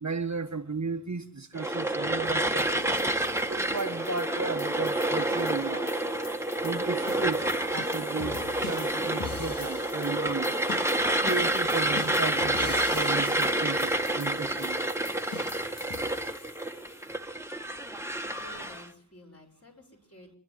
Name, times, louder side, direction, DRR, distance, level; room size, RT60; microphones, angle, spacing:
voice 1, 0.0-3.0 3.5-5.9 6.6-10.8 11.2-14.8, right 4 dB, 45° right, 1.4 m, -35 dB
sound 1, 1.6-18.9, right 1 dB, 5° right, 1.8 m, -29 dB
sound 2, 2.6-17.1, left 4 dB, 55° left, 3.2 m, -44 dB
voice 2, 18.2-20.4, equal, 35° left, 6.2 m, -52 dB
27.0 x 11.0 x 9.6 m
wide cardioid pair, 85°, 40 cm